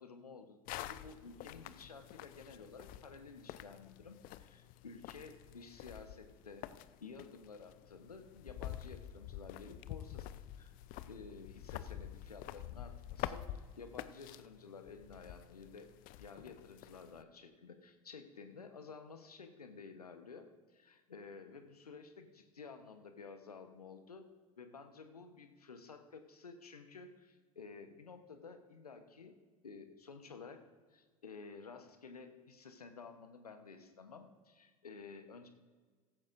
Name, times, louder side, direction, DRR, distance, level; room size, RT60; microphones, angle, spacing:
voice 1, 0.0-6.6 7.0-10.3 10.6-10.7 11.1-15.9 16.2-24.2 24.6-29.4 29.6-30.6 30.9-35.5, left 4 dB, 85° left, 7 dB, 1.1 m, -52 dB
sound 1, 0.7-17.2, left 12 dB, 50° left, 0.6 m, -48 dB
16.5 x 15.0 x 2.6 m, 1.4 s
figure-of-eight pair, 70°, 19 cm